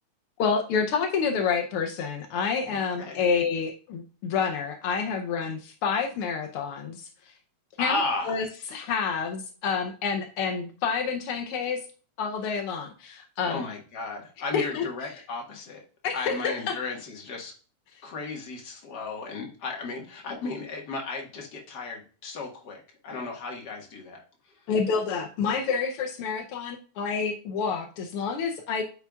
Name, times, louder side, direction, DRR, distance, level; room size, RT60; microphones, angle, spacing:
voice 1, 0.4-7.1 7.8-8.0 8.3-8.5 8.7-11.8 12.2-13.6 14.5-15.1 16.0-16.8 24.7-28.8, left 5 dB, 80° left, 5 dB, 1.2 m, -28 dB
voice 2, 2.7-3.2 7.8-8.4 13.4-15.8 16.1-17.5 18.0-24.2, left 3 dB, 40° left, 1 dB, 1.7 m, -34 dB
9.1 x 5.5 x 2.3 m, 0.38 s
omnidirectional pair, 3.4 m